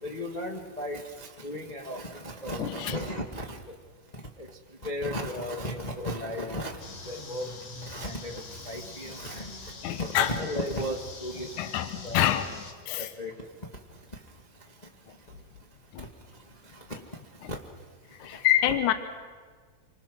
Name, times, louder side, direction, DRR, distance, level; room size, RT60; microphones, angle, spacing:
voice 1, 0.0-3.6 4.4-4.5 4.8-7.5 7.9-9.6 10.0-11.5 12.0-12.2 13.0-13.3 17.5-17.6, left 1 dB, 30° left, 0 dB, 0.7 m, -35 dB
voice 2, 2.6-3.0 9.8-10.3 11.6-12.5 12.9-13.1 15.9-16.1 17.4-17.5 18.2-18.9, left 12 dB, 70° left, 9 dB, 2.3 m, -26 dB
sound 1, 6.8-12.7, left 3 dB, 55° left, 3.0 m, -44 dB
28.0 x 25.0 x 6.2 m, 1.5 s
omnidirectional pair, 3.8 m